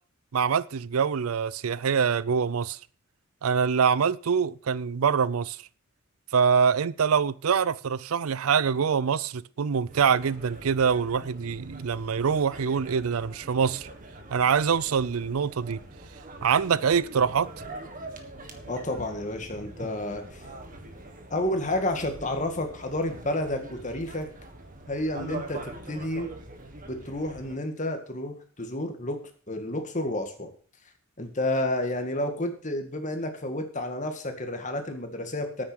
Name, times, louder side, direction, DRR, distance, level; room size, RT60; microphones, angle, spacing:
voice 1, 0.3-2.8 3.4-5.6 6.3-13.9 14.3-15.8 16.4-17.5, right 6 dB, 80° right, 0.5 m, -24 dB
sound 1, 9.9-27.6, right 2 dB, 40° right, 1.6 m, -43 dB
voice 2, 18.7-20.4 21.3-24.3 24.9-26.3 26.9-29.2 29.5-30.5 31.2-35.6, left 1 dB, 35° left, 2.0 m, -30 dB
9.5 x 9.1 x 6.3 m
head